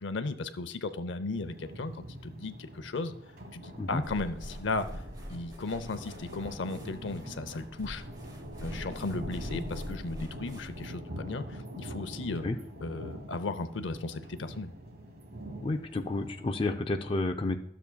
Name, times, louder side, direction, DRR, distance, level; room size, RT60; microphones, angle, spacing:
voice 1, 0.0-3.1 3.5-4.9 5.3-8.0 8.6-12.5 12.8-14.7, left 3 dB, 80° left, 11 dB, 0.6 m, -35 dB
sound 1, 1.3-16.5, equal, 50° right, 1.3 m, -44 dB
Telephone, 3.4-11.5, equal, 50° left, 1.5 m, -57 dB
sound 2, 4.0-10.9, equal, 20° right, 0.9 m, -44 dB
voice 2, 15.6-17.6, left 2 dB, 30° left, 5 dB, 0.4 m, -30 dB
12.5 x 6.9 x 2.2 m, 0.79 s
head